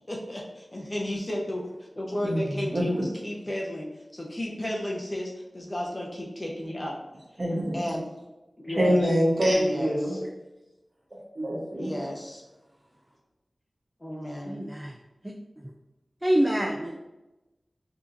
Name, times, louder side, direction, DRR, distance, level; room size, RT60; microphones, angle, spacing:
voice 1, 0.1-1.6 1.9-7.0 7.7-8.0 8.6-9.1 9.5-10.2 11.8-12.4 14.0-14.6, left 1 dB, 30° left, -2 dB, 0.8 m, -33 dB
voice 2, 2.7-3.1 7.4-7.9 8.8-10.2 11.4-11.9, equal, 50° right, -4 dB, 1.1 m, -25 dB
voice 3, 14.5-15.0 16.2-16.9, equal, 15° right, 0 dB, 0.4 m, -25 dB
4.7 x 2.8 x 2.6 m, 1.0 s
wide cardioid pair, 70°, 0 cm